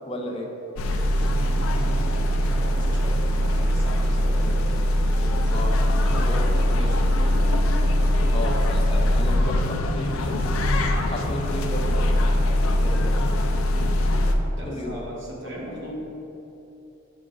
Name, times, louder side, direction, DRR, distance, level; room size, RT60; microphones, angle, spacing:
voice 1, 0.1-0.5 4.4-4.7 5.5-6.4 6.7-7.0 8.3-10.5 11.1-12.3 12.7-13.3 14.6-15.0, left 1 dB, 30° left, 1 dB, 0.6 m, -34 dB
sound 1, 0.8-14.3, equal, 85° left, 0.5 m, -22 dB
voice 2, 1.1-4.9 5.2-5.5 6.0-7.3 14.5-16.0, right 1 dB, 60° right, -5 dB, 1.4 m, -39 dB
7.0 x 3.9 x 3.8 m, 3.0 s
head